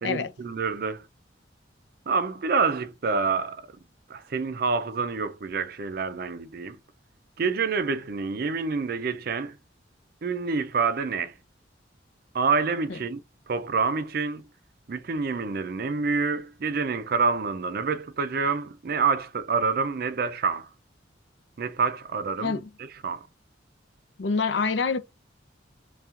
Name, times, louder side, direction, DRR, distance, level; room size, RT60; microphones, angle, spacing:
voice 1, 0.0-1.1 2.1-3.6 4.1-6.8 7.4-9.5 10.2-11.3 12.3-13.2 13.5-14.4 14.9-20.7 21.6-22.6 23.0-23.3, right 4 dB, 55° right, 0.4 m, -27 dB
voice 2, 24.2-25.0, left 5 dB, 75° left, 0.6 m, -26 dB
5.5 x 2.3 x 2.4 m
head